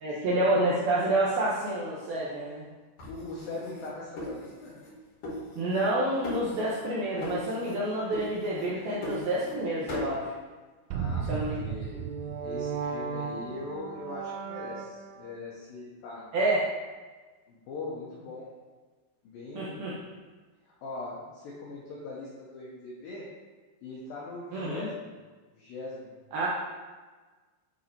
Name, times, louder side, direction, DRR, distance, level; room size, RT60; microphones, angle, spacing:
voice 1, 0.0-2.7 5.6-10.3 11.3-11.5 16.3-16.6 19.6-19.9 24.5-24.9 26.3-26.5, right 1 dB, 75° right, -6 dB, 2.3 m, -28 dB
sound 1, 3.0-4.9 5.2-6.0 6.2-6.9 7.2-7.8 8.1-9.6 9.9-10.2, left 1 dB, 45° left, 3.3 m, -39 dB
voice 2, 3.1-4.8 10.9-12.0 12.4-16.3 17.5-18.5 19.2-19.9 20.7-23.3 23.8-25.1 25.5-26.1, left 3 dB, 80° left, -4 dB, 2.1 m, -41 dB
sound 2, 10.9-15.3, right 6 dB, 90° right, 3.1 m, -35 dB
10.0 x 4.0 x 4.5 m, 1.3 s
omnidirectional pair, 5.4 m